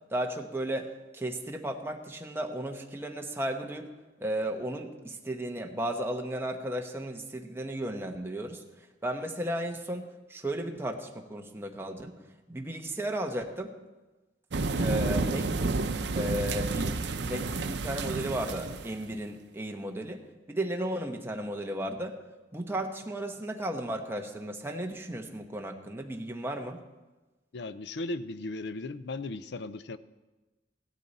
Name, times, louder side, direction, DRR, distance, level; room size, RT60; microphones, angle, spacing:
voice 1, 0.1-3.9 4.2-8.6 9.0-12.1 12.5-13.7 14.8-15.8 16.1-20.2 20.5-22.2 22.5-26.8, right 1 dB, 15° right, 3 dB, 1.0 m, -34 dB
sound 1, 14.5-19.0, right 3 dB, 80° right, 0.7 m, -30 dB
voice 2, 27.5-30.0, left 2 dB, 70° left, 14 dB, 0.5 m, -36 dB
16.0 x 12.0 x 4.1 m, 1.2 s
head